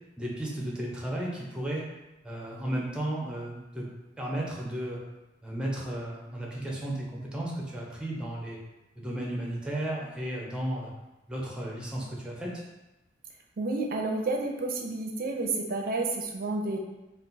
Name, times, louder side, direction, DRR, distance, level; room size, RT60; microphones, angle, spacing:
voice 1, 0.2-1.8 2.2-3.9 4.2-5.0 5.4-8.6 9.0-10.9 11.3-12.5, right 1 dB, 5° right, -3 dB, 0.5 m, -34 dB
voice 2, 13.6-16.8, right 2 dB, 55° right, 2 dB, 0.4 m, -30 dB
2.3 x 2.3 x 3.8 m, 1.0 s
head